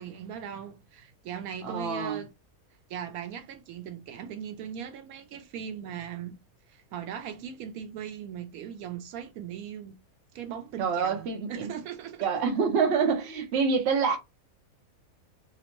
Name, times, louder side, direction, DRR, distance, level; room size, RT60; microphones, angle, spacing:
voice 1, 0.0-2.3 2.9-6.4 6.7-10.0 10.3-12.2, right 8 dB, 80° right, 1.0 m, -39 dB
voice 2, 1.6-2.2 10.8-11.7 12.2-14.2, right 5 dB, 60° right, 0.8 m, -26 dB
2.8 x 2.0 x 2.9 m
omnidirectional pair, 1.5 m